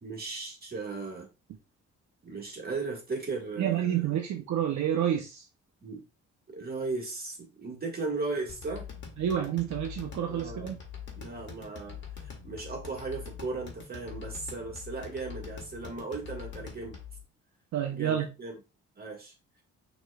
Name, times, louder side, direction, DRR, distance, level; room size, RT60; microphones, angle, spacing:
voice 1, 0.0-1.3 2.2-4.1 5.8-6.0 6.5-8.9 10.3-10.7 11.1-17.0 17.9-18.5 18.9-19.3, right 3 dB, 30° right, 1.7 m, -37 dB
voice 2, 3.6-5.4 9.2-10.8 17.7-18.3, right 10 dB, 70° right, 0.7 m, -29 dB
sound 1, 8.5-17.2, left 7 dB, 40° left, 1.4 m, -44 dB
6.1 x 3.1 x 2.3 m
cardioid pair, 90°, 30 cm